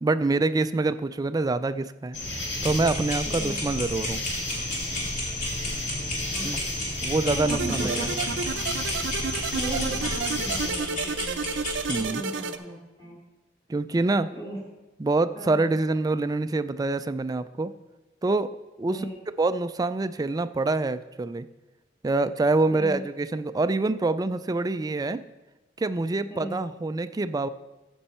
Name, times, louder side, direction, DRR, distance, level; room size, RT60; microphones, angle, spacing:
voice 1, 0.0-2.2 2.6-4.2 6.4-6.6 7.0-8.1 11.9-12.2 13.7-14.3 15.0-17.7 18.2-18.5 18.8-19.0 19.4-21.5 22.0-25.2 25.8-27.5, right 3 dB, 20° right, 12 dB, 0.3 m, -26 dB
sound 1, 2.1-10.7, left 2 dB, 75° left, 2.2 m, -32 dB
sound 2, 2.5-12.0, left 1 dB, 50° left, 2.5 m, -34 dB
voice 2, 3.2-3.6 6.3-7.0 7.2-8.2 8.6-8.7 9.5-11.4 11.9-13.2 14.3-14.6 15.3-15.7 18.9-19.2 22.7-23.1 26.3-26.6, right 1 dB, 20° left, -4 dB, 1.7 m, -37 dB
sound 3, 7.5-12.6, right 5 dB, 90° right, 0.5 m, -31 dB
14.5 x 5.4 x 4.3 m, 1.1 s
head